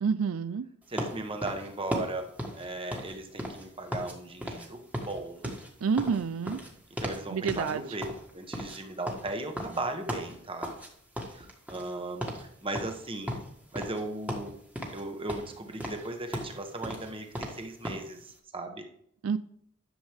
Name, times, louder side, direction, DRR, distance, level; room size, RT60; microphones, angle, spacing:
voice 1, 0.0-0.6 5.8-6.6 7.3-7.8 19.2-19.4, right 6 dB, 80° right, 13 dB, 0.4 m, -28 dB
voice 2, 0.9-4.8 5.1-5.4 7.0-8.1 8.3-10.7 11.3-13.4 13.7-14.6 14.9-18.9, right 2 dB, 25° right, 5 dB, 1.2 m, -37 dB
sound 1, 1.0-4.2 4.4-4.7 4.9-7.2 7.5-7.7 8.0-10.9 11.2-12.0 12.2-12.5 12.7-14.0 14.3-15.0 15.3-18.1, equal, 5° right, 1.5 m, -36 dB
11.0 x 7.2 x 3.6 m, 0.68 s
head